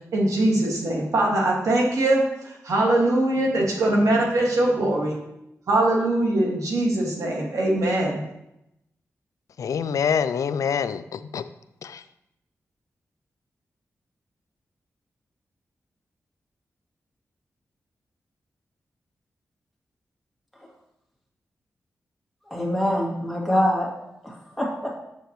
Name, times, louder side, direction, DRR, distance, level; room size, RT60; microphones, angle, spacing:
voice 1, 0.1-5.2 5.7-8.2, right 1 dB, 80° right, -1 dB, 1.8 m, -22 dB
voice 2, 9.6-11.4 11.8-12.0, left 7 dB, 80° left, 13 dB, 0.3 m, -25 dB
voice 3, 22.5-23.9 24.2-25.0, equal, ahead, -2 dB, 2.1 m, -24 dB
7.2 x 7.0 x 3.0 m, 0.84 s
cardioid pair, 75°, 5 cm